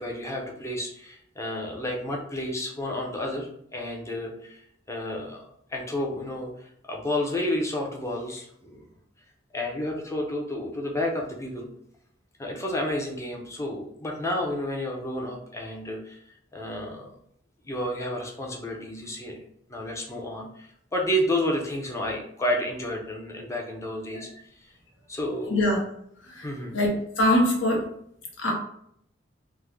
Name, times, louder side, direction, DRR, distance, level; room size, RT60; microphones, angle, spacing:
voice 1, 0.0-5.4 5.7-8.9 9.5-11.7 12.4-16.2 16.5-17.2 17.6-19.4 19.7-24.3 25.1-25.6 26.4-26.8, left 1 dB, 15° left, 0 dB, 0.5 m, -31 dB
voice 2, 25.5-25.8 26.2-26.5 26.7-27.8 28.4-28.5, left 1 dB, 80° left, 0 dB, 1.0 m, -23 dB
3.6 x 2.1 x 3.0 m, 0.70 s
head